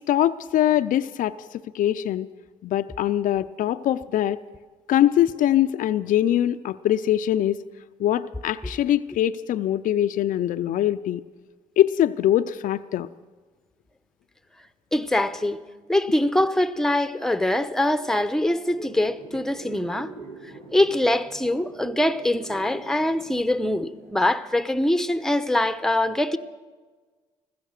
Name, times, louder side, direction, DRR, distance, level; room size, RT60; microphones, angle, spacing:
voice 1, 0.1-1.4 1.7-2.3 2.6-4.4 4.9-7.6 8.0-11.2 11.8-13.1, left 12 dB, 65° left, 0.5 m, -22 dB
voice 2, 14.9-15.6 15.9-20.1 20.7-26.4, left 1 dB, 5° left, 0.9 m, -23 dB
sound 1, 18.7-24.1, right 4 dB, 75° right, 5.2 m, -43 dB
15.0 x 14.5 x 6.6 m
supercardioid pair, 65°, 15 cm